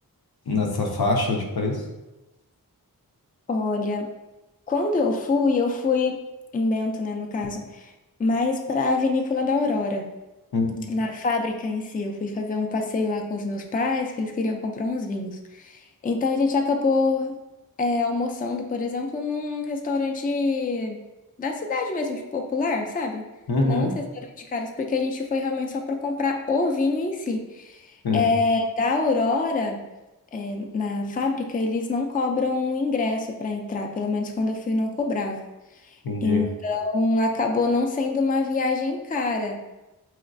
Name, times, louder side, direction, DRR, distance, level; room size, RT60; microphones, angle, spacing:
voice 1, 0.5-1.8 10.5-10.9 23.5-23.9 28.0-28.2 36.0-36.4, left 2 dB, 75° left, 1 dB, 0.7 m, -24 dB
voice 2, 3.5-4.1 4.7-6.3 6.5-7.9 8.2-10.1 10.9-17.4 17.8-21.0 21.4-23.3 23.6-24.1 24.4-29.8 30.3-35.5 35.8-36.0 36.2-39.6, left 3 dB, 25° left, 3 dB, 0.4 m, -25 dB
4.3 x 3.1 x 2.5 m, 1.0 s
wide cardioid pair, 50°, 37 cm